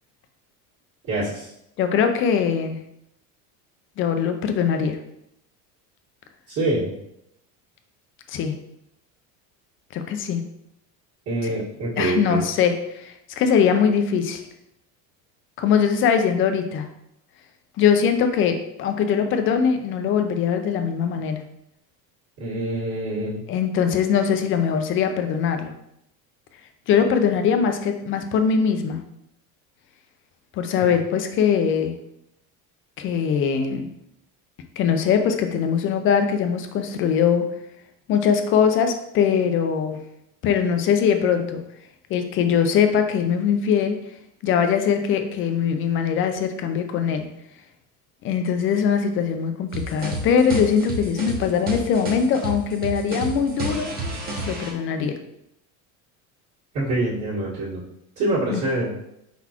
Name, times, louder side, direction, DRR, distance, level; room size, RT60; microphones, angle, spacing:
voice 1, 1.1-1.5 6.5-6.9 11.3-12.4 22.4-23.4 30.8-30.9 56.7-57.8 58.2-58.9, right 2 dB, 45° right, -11 dB, 1.7 m, -25 dB
voice 2, 1.8-2.8 4.0-5.0 8.3-8.5 9.9-10.4 11.4-11.5 12.0-14.4 15.6-16.9 17.8-21.4 23.5-25.7 26.9-29.0 30.5-32.0 33.0-33.9 34.8-37.5 38.1-40.0 40.4-41.6 42.1-44.0 44.4-47.3 48.2-53.9 54.5-55.1 58.5-58.6, left 7 dB, 35° left, 7 dB, 0.4 m, -21 dB
sound 1, 49.7-54.7, right 1 dB, 25° right, 0.9 m, -30 dB
4.6 x 4.1 x 2.9 m, 0.79 s
cardioid pair, 155°, 39 cm